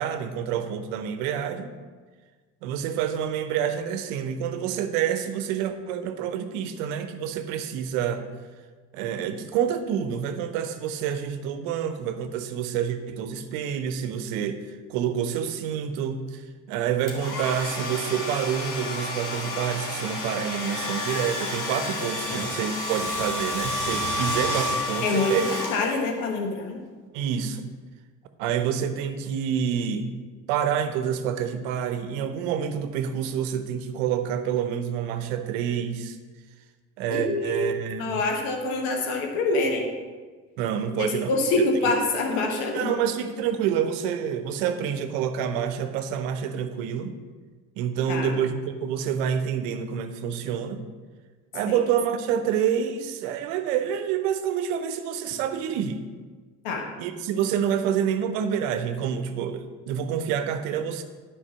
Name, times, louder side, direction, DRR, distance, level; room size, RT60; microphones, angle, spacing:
voice 1, 0.0-1.7 2.6-8.3 8.9-14.6 14.9-16.4 16.7-25.5 27.1-27.7 28.4-30.2 30.5-36.2 37.0-38.2 40.6-41.3 42.7-47.2 47.8-50.8 51.5-56.0 57.0-61.0, right 8 dB, 85° right, 9 dB, 0.8 m, -28 dB
Domestic sounds home sounds, 17.1-26.2, left 1 dB, 55° left, 2.2 m, -30 dB
voice 2, 25.0-26.8 37.1-37.7 38.0-39.9 41.0-42.9 48.1-48.3 51.7-51.8 56.6-56.8, left 2 dB, 85° left, 2 dB, 1.6 m, -26 dB
9.9 x 5.2 x 6.2 m, 1.4 s
hypercardioid pair, 60°, 37 cm